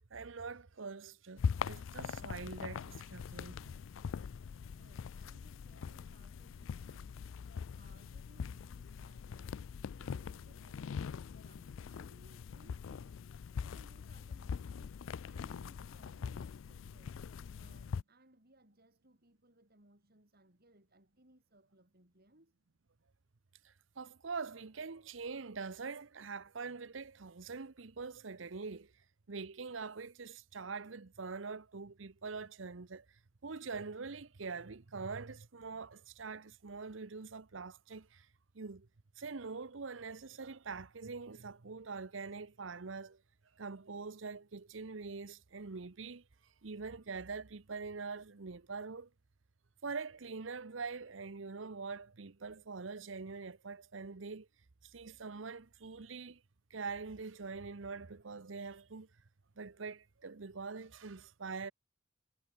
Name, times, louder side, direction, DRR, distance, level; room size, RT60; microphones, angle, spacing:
voice 1, 0.1-3.6 23.6-28.9 29.3-33.0 33.4-38.3 38.5-38.9 39.2-43.2 43.6-46.2 46.6-49.1 49.8-54.5 54.8-56.4 56.7-59.1 59.6-61.7, right 4 dB, 75° right, 0.9 m, -44 dB
sound 1, 1.4-18.0, left 6 dB, 80° left, 0.4 m, -42 dB
voice 2, 4.6-7.3 7.7-9.6 10.0-13.2 13.6-15.0 15.3-17.2 17.6-22.6, right 1 dB, 50° right, 7.4 m, -65 dB
head